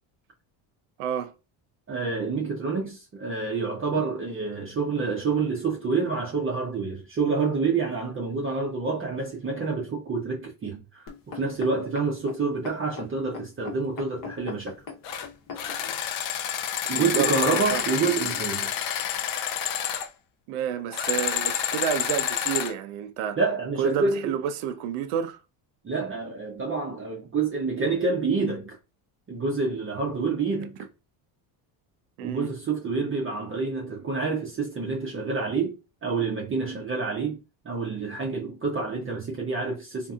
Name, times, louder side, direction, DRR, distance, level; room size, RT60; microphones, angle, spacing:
voice 1, 1.0-1.3 16.9-17.8 20.5-23.4 23.8-25.4 32.2-32.5, right 9 dB, 85° right, 0.6 m, -30 dB
voice 2, 1.9-14.8 16.9-18.7 23.4-24.4 25.8-28.8 29.3-30.9 32.2-35.8 36.0-37.4 37.6-40.1, right 4 dB, 25° right, 0.6 m, -28 dB
sound 1, 11.1-16.0 16.6-16.7, left 6 dB, 40° left, 0.9 m, -40 dB
sound 2, 15.0-15.3 15.6-20.1 20.9-22.7, left 9 dB, 65° left, 0.6 m, -28 dB
2.7 x 2.6 x 2.3 m
cardioid pair, 115°, 49 cm